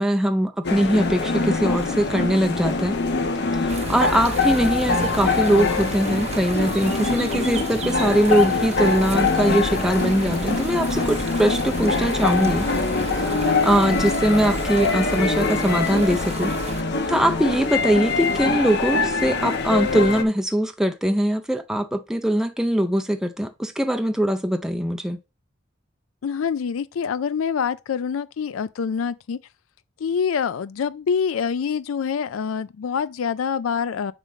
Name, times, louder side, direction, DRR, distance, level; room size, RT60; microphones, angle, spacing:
voice 1, 0.0-3.0 3.5-12.7 13.2-16.5 17.1-25.2, right 1 dB, 5° right, 0.5 m, -22 dB
sound 1, 0.6-20.2, left 3 dB, 55° left, 1.1 m, -24 dB
sound 2, 3.7-16.8, right 3 dB, 30° right, 0.8 m, -34 dB
voice 2, 13.8-14.2 26.2-29.4 30.0-34.1, left 6 dB, 80° left, 0.4 m, -26 dB
8.1 x 3.8 x 5.0 m
head